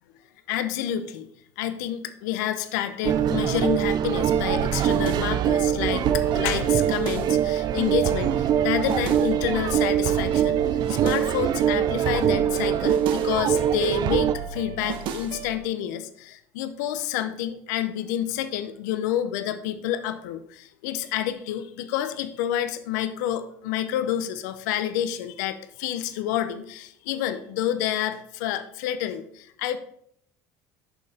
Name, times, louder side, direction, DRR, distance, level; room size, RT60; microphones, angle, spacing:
voice 1, 0.5-1.3 1.6-29.8, left 11 dB, 85° left, 10 dB, 0.6 m, -29 dB
sound 1, 3.0-14.3, right 10 dB, 45° right, 0.4 m, -23 dB
sound 2, 4.3-15.6, right 6 dB, 65° right, 0.8 m, -34 dB
7.0 x 5.5 x 4.1 m, 0.68 s
supercardioid pair, 85°, 9 cm